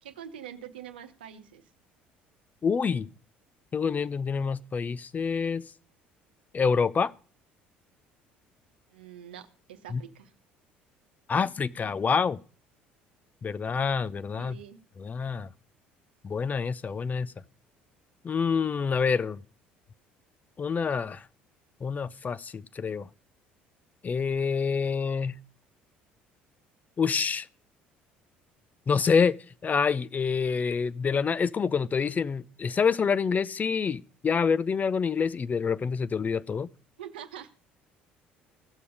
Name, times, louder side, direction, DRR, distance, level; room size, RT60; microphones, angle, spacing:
voice 1, 0.0-1.6 8.9-10.3 14.4-14.8 37.0-37.5, right 9 dB, 85° right, 0.9 m, -44 dB
voice 2, 2.6-3.1 3.7-5.6 6.5-7.1 9.9-10.0 11.3-12.4 13.4-14.6 15.0-15.5 16.2-17.3 18.2-19.4 20.6-21.2 21.8-23.1 24.0-25.4 27.0-27.5 28.9-29.4 29.6-36.7, left 5 dB, 30° left, 0.5 m, -27 dB
16.0 x 6.9 x 5.0 m
hypercardioid pair, 60°, 5 cm